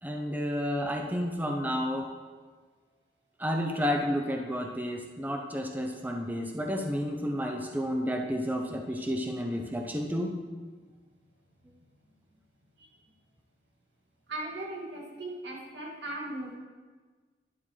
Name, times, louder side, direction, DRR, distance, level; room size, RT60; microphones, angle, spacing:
voice 1, 0.0-2.1 3.4-10.3, equal, 10° right, 3 dB, 0.6 m, -31 dB
voice 2, 14.3-16.6, right 1 dB, 90° right, -2 dB, 2.2 m, -38 dB
11.5 x 11.0 x 3.2 m, 1.4 s
head